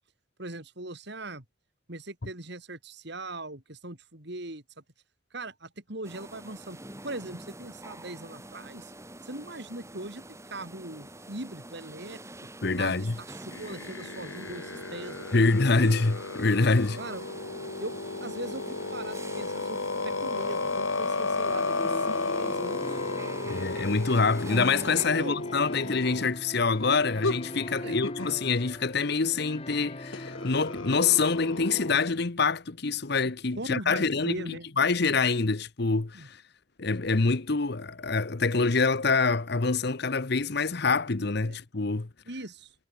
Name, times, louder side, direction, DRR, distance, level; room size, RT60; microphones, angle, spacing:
voice 1, 0.4-1.4 1.9-4.6 5.3-8.9 9.2-12.2 12.8-16.0 17.0-17.3 17.8-19.8 20.0-23.0 25.1-25.4 27.8-28.0 33.2-34.7 36.1-36.3 41.4-41.6 42.3-42.7, right 2 dB, 55° right, 2.9 m, -40 dB
sound 1, 6.0-25.1, right 1 dB, 15° right, 5.6 m, -45 dB
voice 2, 12.6-13.2 15.3-17.0 23.4-36.4 36.8-42.1, left 4 dB, 50° left, 0.9 m, -26 dB
sound 2, 13.5-26.3 27.2-27.4 28.0-28.4 30.1-32.0, left 3 dB, 75° left, 2.2 m, -33 dB
sound 3, 21.5-32.0, left 1 dB, 30° left, 1.6 m, -40 dB
head